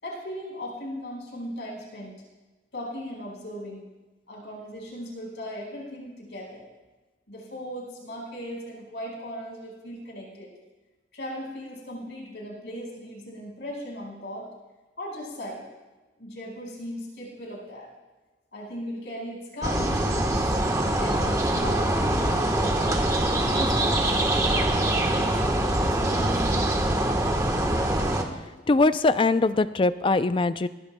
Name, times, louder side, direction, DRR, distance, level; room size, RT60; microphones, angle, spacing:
voice 1, 0.0-2.2 2.7-3.8 4.3-6.7 7.3-10.5 11.1-14.5 15.0-15.6 16.2-17.9 18.5-23.0 23.4-25.4 25.8-26.9, equal, 85° left, -3 dB, 5.0 m, -38 dB
sound 1, 19.6-28.2, right 1 dB, 20° right, 1.2 m, -24 dB
voice 2, 28.7-30.7, left 3 dB, 30° left, 13 dB, 0.4 m, -22 dB
20.5 x 18.5 x 2.2 m, 1.2 s
head